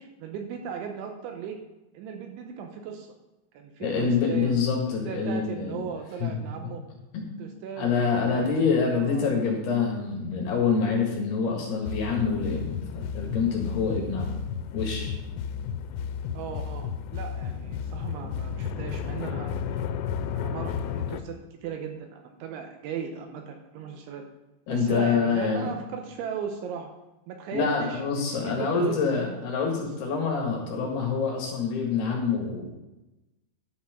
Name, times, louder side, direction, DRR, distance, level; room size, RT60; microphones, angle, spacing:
voice 1, 0.0-1.6 1.9-3.1 3.5-4.6 4.9-6.8 7.4-9.3 16.3-19.9 20.3-21.4 21.6-24.2 24.7-26.9 27.3-29.0 29.8-29.9, right 7 dB, 80° right, 4 dB, 2.9 m, -37 dB
voice 2, 3.8-5.8 6.2-6.5 7.1-7.4 7.8-14.4 14.7-15.1 24.7-25.7 27.5-32.7, left 5 dB, 65° left, 0 dB, 3.2 m, -26 dB
sound 1, 11.8-21.2, left 7 dB, 90° left, 3.3 m, -33 dB
11.5 x 5.9 x 5.9 m, 1.0 s
omnidirectional pair, 5.8 m